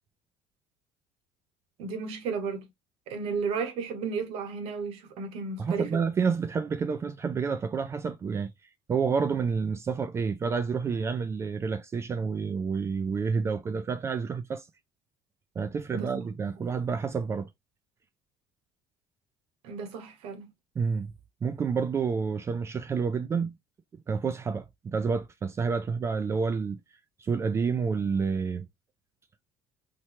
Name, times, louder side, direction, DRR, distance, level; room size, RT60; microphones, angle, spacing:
voice 1, 1.8-2.7 3.1-6.0 15.9-16.2 19.6-20.5, right 5 dB, 70° right, 1.0 m, -33 dB
voice 2, 5.6-8.5 8.9-14.7 15.6-17.5 20.8-21.1 21.4-23.5 24.1-26.8 27.2-28.7, right 5 dB, 25° right, 0.3 m, -29 dB
4.3 x 2.2 x 2.9 m
cardioid pair, 115°, 10 cm